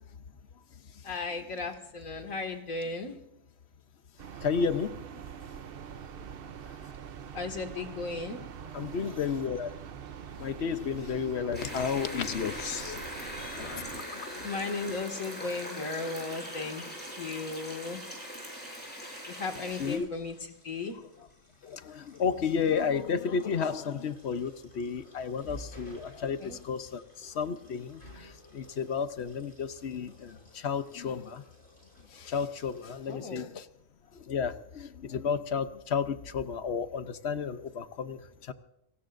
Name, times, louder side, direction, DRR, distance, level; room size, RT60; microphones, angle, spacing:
voice 1, 1.0-3.2 7.3-8.4 14.4-18.0 19.3-21.0 26.4-26.6 33.1-33.5, left 3 dB, 80° left, 4 dB, 2.4 m, -36 dB
sound 1, 4.2-14.0, right 8 dB, 55° right, 0.8 m, -44 dB
voice 2, 4.4-5.1 8.7-9.7 10.4-14.4 19.6-20.1 21.6-31.4 32.1-33.7 34.1-38.5, left 6 dB, 55° left, 11 dB, 1.0 m, -32 dB
sound 2, 11.5-20.0, equal, 5° left, 6.8 m, -41 dB
sound 3, 19.5-33.1, left 1 dB, 40° left, 7.4 m, -54 dB
29.5 x 17.0 x 2.6 m, 0.83 s
omnidirectional pair, 1.4 m